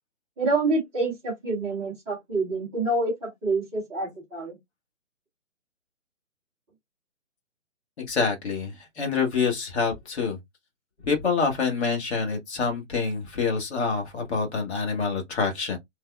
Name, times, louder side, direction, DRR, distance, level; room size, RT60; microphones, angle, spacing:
voice 1, 0.4-4.6, right 2 dB, 5° right, 0.6 m, -27 dB
voice 2, 8.0-10.4 11.0-15.8, left 5 dB, 55° left, 1.4 m, -26 dB
3.2 x 2.3 x 2.2 m
figure-of-eight pair, 140°, 39 cm